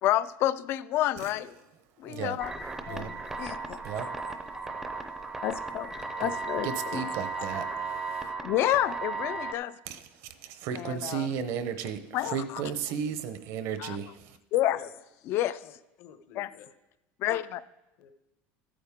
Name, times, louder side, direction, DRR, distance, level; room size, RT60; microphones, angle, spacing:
voice 1, 0.0-1.4 2.0-2.5 2.9-3.8 4.2-4.4 5.4-7.0 7.4-7.5 8.4-9.7 10.7-11.3 12.1-12.6 13.8-14.0 14.5-14.8 15.3-15.6 16.4-16.5 17.2-17.6, left 13 dB, 40° left, 0.4 m, -29 dB
voice 2, 2.0-2.4 2.9-3.1 3.7-4.4 5.0-5.1 6.2-6.3 6.6-8.3 9.9-14.4, right 7 dB, 55° right, 0.8 m, -35 dB
sound 1, 2.4-9.5, right 4 dB, 10° right, 0.5 m, -35 dB
voice 3, 4.4-4.8 8.5-8.6 14.7-14.9 15.2-15.3 15.6-15.7 16.0-16.7 18.0-18.1, left 9 dB, 60° left, 0.9 m, -50 dB
14.0 x 8.6 x 3.6 m
cardioid pair, 160°, 6 cm